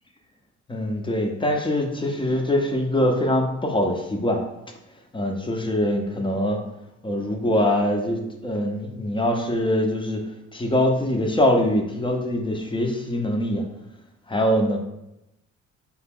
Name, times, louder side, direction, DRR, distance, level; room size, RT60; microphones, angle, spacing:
voice 1, 0.7-4.4 5.1-6.6 7.0-10.2 10.5-13.6 14.3-14.8, left 1 dB, 15° left, 2 dB, 0.6 m, -23 dB
4.1 x 2.9 x 3.6 m, 0.89 s
cardioid pair, 90°, 30 cm